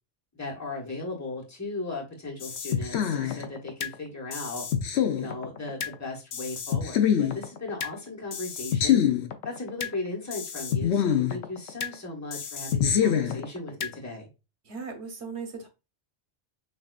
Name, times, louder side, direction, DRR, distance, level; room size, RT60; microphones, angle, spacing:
voice 1, 0.3-4.6 5.2-9.0 9.4-14.3, left 2 dB, 15° left, 1.3 m, -37 dB
sound 1, 2.4-3.9 4.3-5.9 6.3-7.9 8.3-9.9 10.3-11.9 12.3-13.9, left 9 dB, 85° left, 1.0 m, -26 dB
voice 2, 14.6-15.7, right 5 dB, 85° right, 1.4 m, -37 dB
6.6 x 2.8 x 2.4 m
omnidirectional pair, 1.1 m